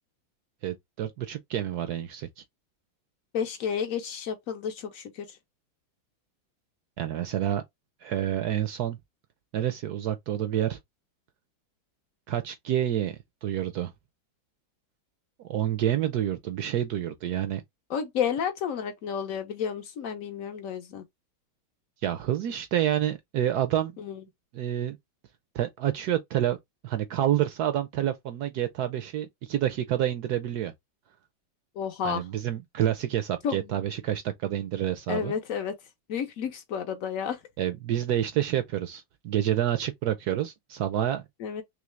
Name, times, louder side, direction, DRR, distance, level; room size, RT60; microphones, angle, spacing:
voice 1, 0.6-2.3 7.0-7.6 8.0-9.0 9.5-10.8 12.3-13.9 15.5-17.6 22.0-23.9 24.5-25.0 25.5-26.6 26.8-30.7 32.0-35.3 37.6-41.2, right 11 dB, 75° right, 0.9 m, -28 dB
voice 2, 3.3-5.4 17.9-21.0 24.0-24.2 31.8-32.2 33.4-33.7 35.1-35.7 36.1-37.4 41.4-41.6, left 7 dB, 70° left, 0.8 m, -31 dB
3.7 x 3.1 x 3.1 m
omnidirectional pair, 2.2 m